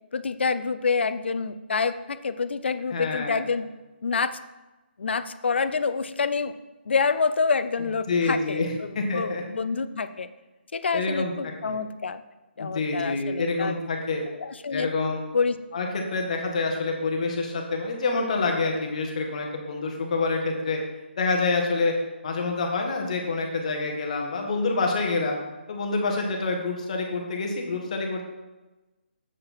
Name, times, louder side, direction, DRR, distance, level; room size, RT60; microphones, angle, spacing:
voice 1, 0.1-3.7 4.0-4.4 5.0-6.5 6.9-10.3 10.7-12.2 12.6-13.8 14.4-14.9 15.3-15.6, left 5 dB, 70° left, 12 dB, 0.5 m, -27 dB
voice 2, 2.9-3.4 8.1-9.4 10.9-11.3 11.6-11.8 12.6-14.2 14.7-15.2 15.7-20.8 21.2-21.9 22.2-25.4 25.7-28.2, left 3 dB, 35° left, 2 dB, 1.2 m, -27 dB
7.4 x 5.1 x 4.3 m, 1.1 s
hypercardioid pair, 170°, 6 cm